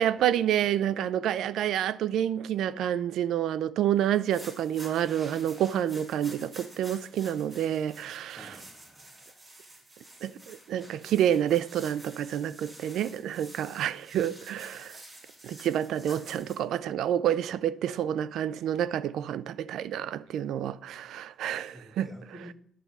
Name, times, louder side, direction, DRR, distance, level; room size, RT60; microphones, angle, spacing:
voice 1, 0.0-8.5 10.2-15.0 15.4-22.1, right 10 dB, 80° right, 0.4 m, -28 dB
sound 1, 4.1-16.6, right 1 dB, 35° right, 3.6 m, -50 dB
voice 2, 8.3-9.5 20.3-20.4 21.7-22.5, equal, 15° right, 1.8 m, -50 dB
10.5 x 5.3 x 5.9 m
cardioid pair, 90°, 0 cm